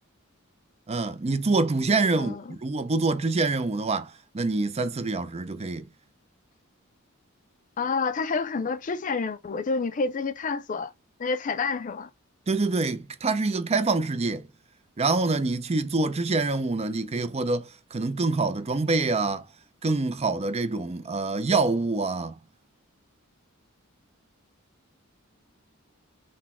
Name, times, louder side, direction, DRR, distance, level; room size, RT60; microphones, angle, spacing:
voice 1, 0.9-5.9 12.5-14.5 15.0-19.4 19.8-22.4, right 3 dB, 30° right, 0.5 m, -26 dB
voice 2, 2.1-2.6 7.8-10.9 11.2-12.1, left 4 dB, 40° left, 0.4 m, -29 dB
4.1 x 2.2 x 4.2 m
head